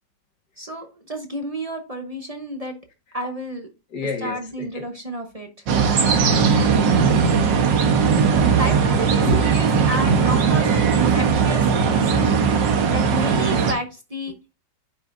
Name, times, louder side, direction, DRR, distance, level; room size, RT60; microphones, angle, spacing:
voice 1, 0.6-2.8 3.1-3.7 4.2-5.7 8.6-12.4 12.8-14.6, equal, 30° right, 0.8 m, -31 dB
voice 2, 3.9-4.9 6.1-7.8 9.3-9.4, left 2 dB, 70° left, 2.3 m, -31 dB
sound 1, 5.7-13.7, right 6 dB, 85° right, 1.8 m, -18 dB
10.0 x 5.6 x 2.6 m
omnidirectional pair, 1.9 m